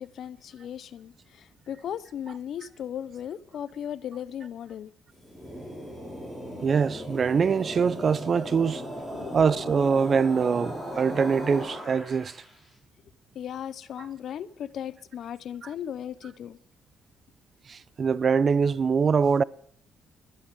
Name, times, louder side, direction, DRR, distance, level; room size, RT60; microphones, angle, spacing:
voice 1, 0.0-4.9 9.1-9.5 13.3-16.6, left 9 dB, 65° left, 0.7 m, -37 dB
sound 1, 5.1-12.5, equal, 5° right, 5.3 m, -37 dB
voice 2, 6.6-8.8 9.3-12.4 14.0-14.1 15.6-15.7 17.7-19.4, right 6 dB, 45° right, 0.4 m, -23 dB
11.5 x 11.5 x 4.8 m
cardioid pair, 90°, 0 cm